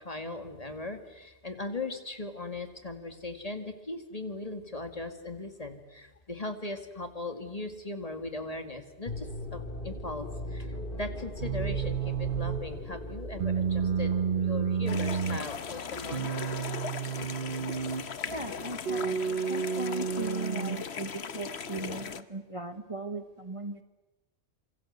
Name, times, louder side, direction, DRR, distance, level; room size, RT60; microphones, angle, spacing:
voice 1, 0.0-16.3, left 2 dB, 35° left, 7 dB, 2.2 m, -39 dB
sound 1, 9.0-15.2, left 1 dB, 50° left, 3.5 m, -39 dB
sound 2, 11.4-12.7 13.4-15.5 16.1-18.1 18.9-20.8, right 7 dB, 50° right, 1.2 m, -31 dB
sound 3, 14.9-22.2, left 6 dB, 70° left, 1.3 m, -38 dB
voice 2, 18.3-19.2 19.5-23.8, right 2 dB, 30° right, 8 dB, 1.5 m, -38 dB
27.5 x 25.5 x 8.1 m, 1.1 s
omnidirectional pair, 1.1 m